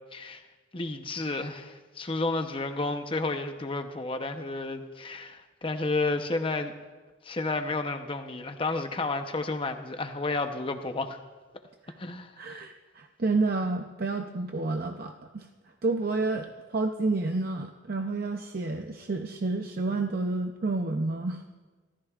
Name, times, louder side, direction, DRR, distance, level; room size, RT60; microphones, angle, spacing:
voice 1, 0.1-0.4 0.7-6.7 7.2-11.2 12.0-12.6, left 3 dB, 30° left, 6 dB, 0.8 m, -31 dB
voice 2, 12.4-15.5 15.8-21.4, right 3 dB, 50° right, 5 dB, 0.6 m, -30 dB
27.0 x 14.0 x 2.5 m, 1.3 s
head